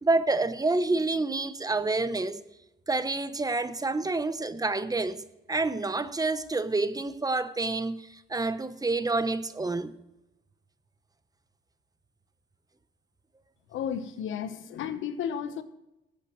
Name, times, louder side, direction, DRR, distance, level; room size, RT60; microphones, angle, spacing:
voice 1, 0.0-2.4 2.9-9.9, right 3 dB, 20° right, 0.9 m, -28 dB
voice 2, 13.7-15.6, left 8 dB, 80° left, 1.1 m, -33 dB
18.5 x 8.4 x 3.1 m
cardioid pair, 90°, 20 cm